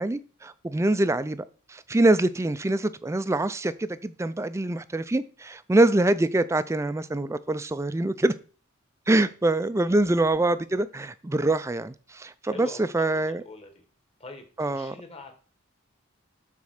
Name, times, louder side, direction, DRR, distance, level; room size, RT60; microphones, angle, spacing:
voice 1, 0.0-8.3 9.1-13.4 14.6-15.0, right 2 dB, 15° right, 0.3 m, -24 dB
voice 2, 12.4-13.8 14.2-15.3, left 3 dB, 25° left, 1.4 m, -44 dB
7.0 x 4.3 x 6.5 m
head